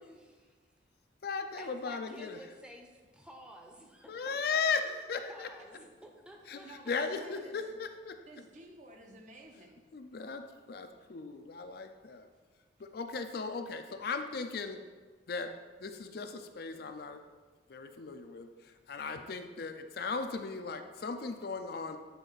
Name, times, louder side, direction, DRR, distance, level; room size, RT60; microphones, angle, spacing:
voice 1, 0.0-0.4 1.6-5.0 5.3-6.9, equal, 5° right, 1 dB, 0.7 m, -53 dB
voice 2, 1.2-2.4 4.1-5.5 6.5-6.6 6.9-8.2 9.9-12.3 12.8-14.8 15.3-15.5 15.8-17.2 17.7-22.0, left 5 dB, 55° left, 7 dB, 0.4 m, -37 dB
voice 3, 6.6-7.6 8.3-9.9 12.8-12.9, right 2 dB, 40° right, 3 dB, 0.7 m, -53 dB
8.3 x 4.0 x 4.0 m, 1.4 s
head